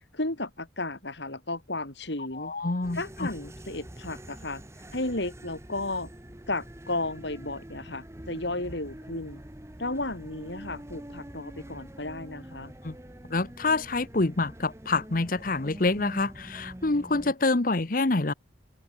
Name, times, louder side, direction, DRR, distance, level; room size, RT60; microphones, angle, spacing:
voice 1, 0.1-2.5 2.9-4.6 4.9-6.1 6.5-9.4 9.8-12.7, left 2 dB, 65° left, 4.1 m, -33 dB
voice 2, 2.4-3.3 12.8-13.0 13.3-18.3, left 3 dB, 45° left, 1.0 m, -27 dB
sound 1, 2.8-17.3, right 1 dB, 15° right, 1.1 m, -45 dB
open air
head